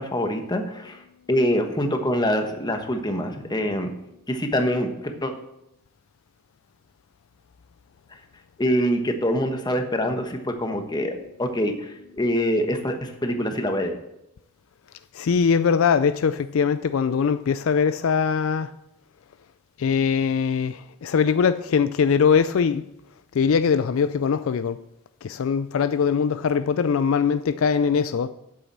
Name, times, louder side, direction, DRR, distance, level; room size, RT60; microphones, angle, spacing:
voice 1, 0.0-3.9 4.3-5.3 8.1-8.2 8.6-14.0, equal, 20° left, 1.1 m, -25 dB
voice 2, 15.1-18.7 19.8-22.9 23.3-24.8 25.2-28.3, left 6 dB, 65° left, 0.4 m, -21 dB
8.7 x 7.1 x 7.4 m
head